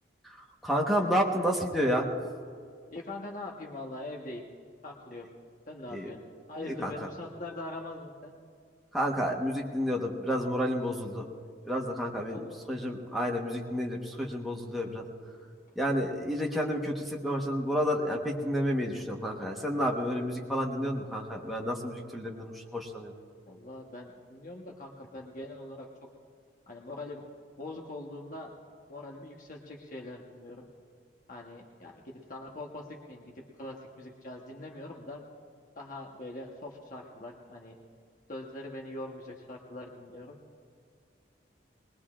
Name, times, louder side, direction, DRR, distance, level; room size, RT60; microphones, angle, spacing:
voice 1, 0.6-2.0 5.9-6.1 6.8-6.9 8.9-11.2 11.7-12.4 12.7-15.0 15.8-23.1, equal, ahead, -2 dB, 1.2 m, -30 dB
voice 2, 2.9-4.5 4.8-5.3 5.7-6.2 6.5-8.4 12.3-12.8 23.5-25.9 26.7-27.2 27.6-28.6 28.9-30.7 31.3-35.2 35.7-37.8 38.3-40.4, left 2 dB, 45° left, -1 dB, 1.1 m, -42 dB
21.5 x 21.0 x 2.5 m, 2.2 s
head